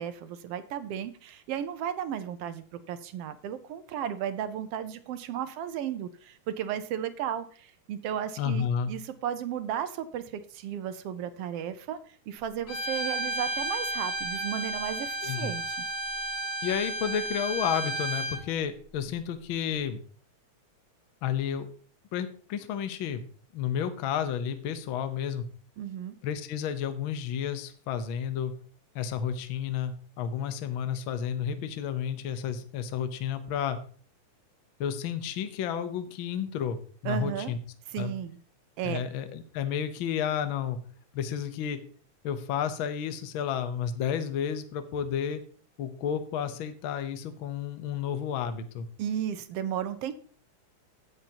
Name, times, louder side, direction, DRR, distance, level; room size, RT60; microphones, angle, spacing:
voice 1, 0.0-15.8 25.8-26.2 37.0-37.5 37.9-38.4 38.8-39.0 49.0-50.2, right 9 dB, 70° right, 11 dB, 1.5 m, -34 dB
voice 2, 8.4-8.9 15.2-15.5 16.6-20.0 21.2-21.7 22.1-23.3 23.5-25.5 26.2-28.5 28.9-33.8 34.8-37.6 38.0-38.1 38.8-40.8 41.1-41.8 42.2-45.4 45.8-48.9, left 8 dB, 65° left, 10 dB, 1.2 m, -31 dB
Bowed string instrument, 12.7-18.4, right 2 dB, 45° left, 2.4 m, -32 dB
16.5 x 6.9 x 2.9 m, 0.43 s
omnidirectional pair, 3.4 m